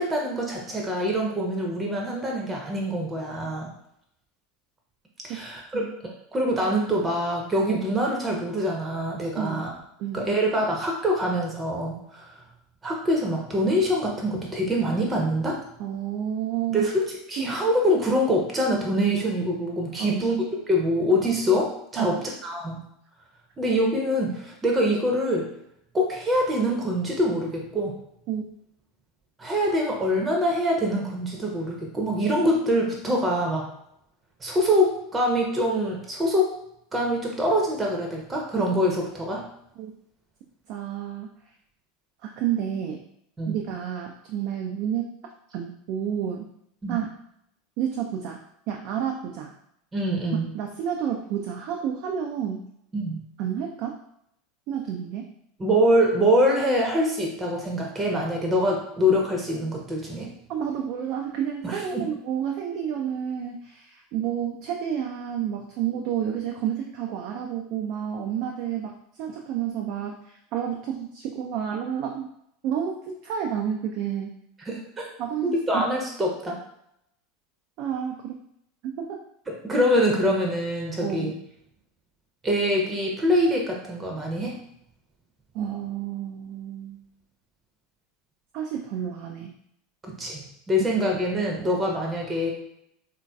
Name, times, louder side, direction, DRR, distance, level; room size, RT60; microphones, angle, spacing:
voice 1, 0.0-3.7 5.2-9.7 10.1-12.4 12.8-15.6 16.7-22.8 23.6-25.5 25.9-28.0 29.4-33.7 34.4-36.5 36.9-39.4 43.4-43.6 46.8-47.0 49.9-50.5 52.9-53.2 55.6-60.3 61.6-62.1 74.6-75.1 75.4-76.6 79.5-81.3 82.4-84.5 90.0-92.5, equal, 20° right, 0 dB, 0.7 m, -24 dB
voice 2, 15.8-16.9 20.0-20.2 22.0-22.2 28.3-28.4 39.8-39.9 40.7-41.3 42.2-43.0 43.5-45.2 45.5-46.5 46.9-47.1 47.8-48.4 48.7-49.5 50.5-52.7 53.4-54.0 54.7-55.3 60.5-72.3 72.6-74.4 75.2-75.9 77.8-78.4 78.8-79.2 81.0-81.3 85.5-87.0 88.5-89.5, right 9 dB, 50° right, 2 dB, 0.3 m, -30 dB
3.6 x 2.7 x 2.3 m, 0.75 s
figure-of-eight pair, 80°, 0 cm